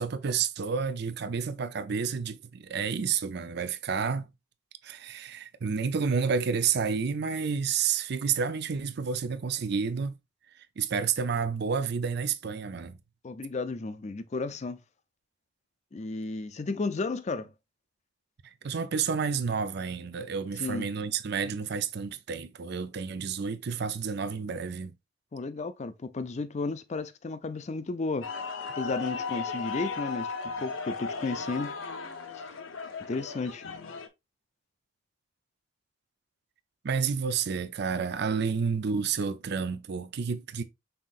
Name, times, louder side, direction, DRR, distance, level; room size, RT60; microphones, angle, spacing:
voice 1, 0.0-4.3 4.8-10.1 10.6-13.0 18.4-24.9 36.8-40.6, right 6 dB, 55° right, 0.5 m, -30 dB
voice 2, 13.2-14.8 15.9-17.5 20.6-20.9 25.3-28.3 28.8-30.3 30.6-31.7 32.3-32.4 33.1-33.6, left 3 dB, 35° left, 0.4 m, -33 dB
sound 1, 28.2-34.1, left 4 dB, 85° left, 0.8 m, -36 dB
5.7 x 3.7 x 2.4 m
head